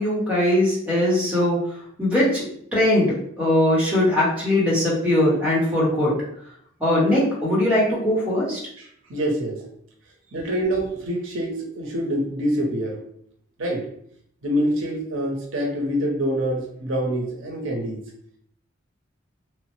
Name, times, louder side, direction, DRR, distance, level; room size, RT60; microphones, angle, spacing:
voice 1, 0.0-2.4 2.7-6.1 6.8-8.6, left 1 dB, 5° right, -7 dB, 0.9 m, -20 dB
voice 2, 8.8-9.6 10.3-13.0 13.6-13.9 14.4-18.0, equal, 75° right, 0 dB, 0.7 m, -26 dB
3.0 x 2.0 x 3.0 m, 0.65 s
head